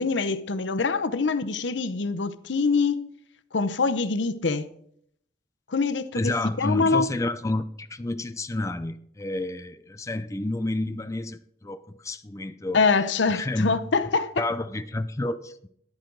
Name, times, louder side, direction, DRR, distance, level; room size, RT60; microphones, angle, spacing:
voice 1, 0.0-3.1 3.5-4.7 5.7-6.3 6.6-7.1 12.7-14.4, left 4 dB, 90° left, 0.8 m, -24 dB
voice 2, 6.1-12.8 13.4-13.8 14.4-15.7, left 2 dB, 15° left, 0.4 m, -30 dB
13.5 x 11.0 x 3.9 m
head